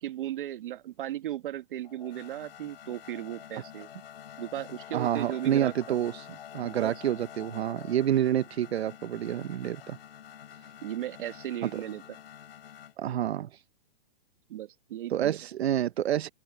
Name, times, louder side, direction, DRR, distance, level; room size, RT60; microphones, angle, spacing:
voice 1, 0.0-3.9 4.4-5.9 6.8-6.9 10.8-12.0 14.5-15.4, right 13 dB, 55° right, 1.7 m, -36 dB
sound 1, 1.8-12.9, left 10 dB, 70° left, 6.4 m, -48 dB
voice 2, 4.9-6.3 6.5-10.0 11.6-11.7 13.0-13.6 15.1-16.3, right 11 dB, 80° right, 0.9 m, -28 dB
open air
hypercardioid pair, 165°, 31 cm